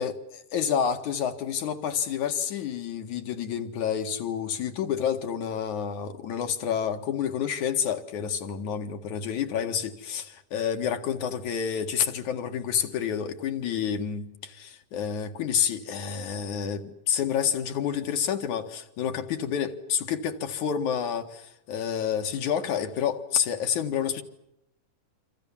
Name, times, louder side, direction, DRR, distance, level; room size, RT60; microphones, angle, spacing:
voice 1, 0.5-24.2, left 8 dB, 70° left, 3.2 m, -29 dB
27.5 x 26.0 x 7.3 m
omnidirectional pair, 3.6 m